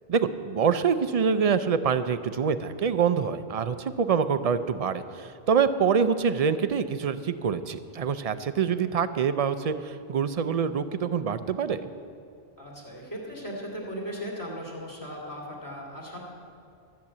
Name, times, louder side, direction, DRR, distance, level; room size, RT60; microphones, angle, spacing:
voice 1, 0.1-11.8, right 6 dB, 50° right, 12 dB, 0.4 m, -25 dB
voice 2, 12.6-16.2, equal, 15° left, -3 dB, 2.5 m, -37 dB
13.5 x 7.2 x 8.4 m, 2.5 s
omnidirectional pair, 1.1 m